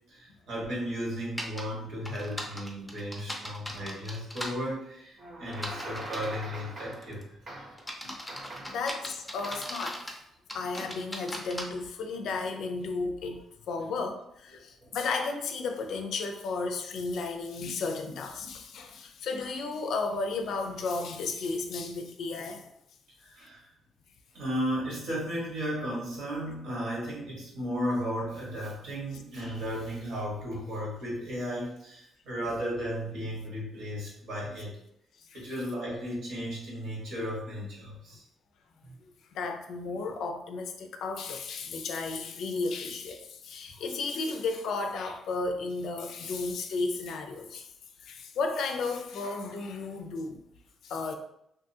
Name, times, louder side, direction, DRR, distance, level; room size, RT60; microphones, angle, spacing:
voice 1, 0.1-7.2 14.8-14.9 23.2-23.7 24.3-34.7 35.3-38.2 38.8-39.0, equal, 80° right, -5 dB, 1.2 m, -35 dB
sound 1, 1.4-1.6 2.0-4.5 5.5-6.4 6.9-7.2 7.8-10.2 10.5-11.6, left 1 dB, 5° left, 0.5 m, -38 dB
sound 2, 5.2-7.2 7.5-7.9 8.3-8.9 9.4-9.8, right 1 dB, 50° right, 0.8 m, -42 dB
voice 2, 8.6-10.0 10.5-22.7 35.3-35.4 39.3-47.7 48.0-50.4 50.8-51.1, left 3 dB, 75° left, 5 dB, 0.4 m, -33 dB
2.6 x 2.4 x 2.6 m, 0.77 s
cardioid pair, 90°, 0 cm